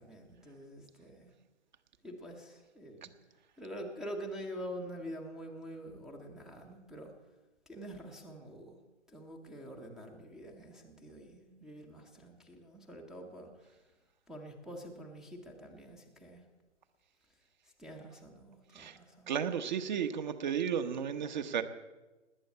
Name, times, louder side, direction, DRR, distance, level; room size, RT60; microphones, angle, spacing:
voice 1, 0.0-1.3 2.0-3.1 3.6-7.1 7.7-8.8 9.1-13.8 14.3-16.4 17.8-19.3, equal, ahead, 2 dB, 0.7 m, -46 dB
voice 2, 19.3-21.6, right 8 dB, 40° right, 9 dB, 1.0 m, -33 dB
19.0 x 8.6 x 8.2 m, 1.1 s
figure-of-eight pair, 140°, 36 cm